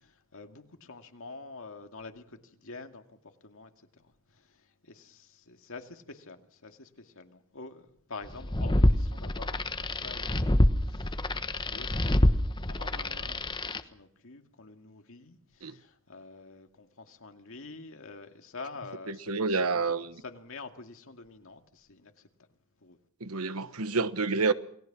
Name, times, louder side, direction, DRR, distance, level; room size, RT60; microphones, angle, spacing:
voice 1, 0.3-2.2 2.5-3.0 3.4-3.7 4.9-10.5 10.9-11.1 11.5-12.3 12.7-13.6 13.9-22.1 22.8-23.0, left 3 dB, 65° left, 2.3 m, -47 dB
sound 1, 8.3-13.8, left 1 dB, 20° left, 1.2 m, -26 dB
voice 2, 19.1-20.2 23.2-24.5, right 4 dB, 80° right, 1.3 m, -29 dB
28.5 x 19.0 x 6.1 m
head